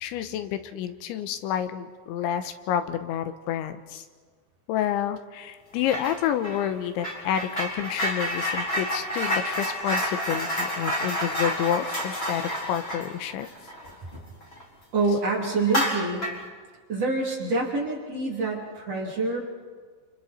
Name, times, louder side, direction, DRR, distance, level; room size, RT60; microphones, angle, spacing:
voice 1, 0.0-4.1 4.7-13.5 15.1-15.2, left 10 dB, 85° left, 9 dB, 3.2 m, -29 dB
sound 1, 5.8-6.2 6.4-14.6 15.0-15.1 15.6-16.5, equal, 15° left, 3.6 m, -29 dB
voice 2, 14.9-16.3 16.9-19.4, right 3 dB, 35° right, -2 dB, 3.5 m, -26 dB
29.5 x 28.5 x 4.3 m, 1.6 s
omnidirectional pair, 5.3 m